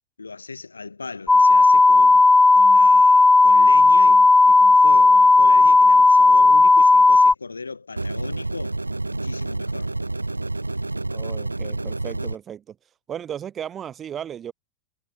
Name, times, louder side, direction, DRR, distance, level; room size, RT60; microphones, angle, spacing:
voice 1, 0.2-2.2 2.5-8.8 9.0-9.9, left 4 dB, 80° left, 3.3 m, -37 dB
sound 1, 1.3-7.3, left 3 dB, 10° left, 0.3 m, -13 dB
sound 2, 8.0-12.4, right 2 dB, 85° right, 1.4 m, -29 dB
voice 2, 11.1-12.8 13.1-14.5, right 9 dB, 25° right, 5.4 m, -35 dB
figure-of-eight pair, 90°, 0 cm